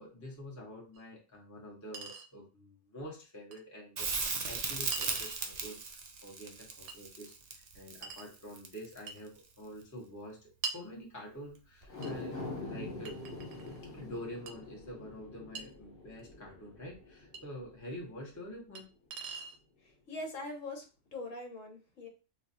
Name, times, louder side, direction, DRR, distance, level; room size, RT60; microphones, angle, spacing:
voice 1, 0.0-13.2 13.9-18.9, equal, 15° left, -2 dB, 0.7 m, -47 dB
Chink clink, 1.0-1.1 1.9-2.3 3.5-3.6 4.9-5.5 6.9-7.0 8.0-8.3 9.1-9.3 10.6-10.9 12.0-12.2 13.1-13.8 14.5-14.6 15.6-15.7 17.3-17.4 18.8-18.9 19.1-19.6, right 4 dB, 85° right, 1.1 m, -42 dB
Crackle, 4.0-9.1 11.8-11.9, right 4 dB, 70° right, 0.4 m, -37 dB
sound 1, 11.8-18.3 18.7-18.8, left 2 dB, 45° left, 1.2 m, -45 dB
voice 2, 20.1-20.8 21.1-22.1, left 2 dB, 65° left, 2 dB, 1.3 m, -41 dB
4.1 x 2.4 x 2.6 m, 0.33 s
omnidirectional pair, 1.5 m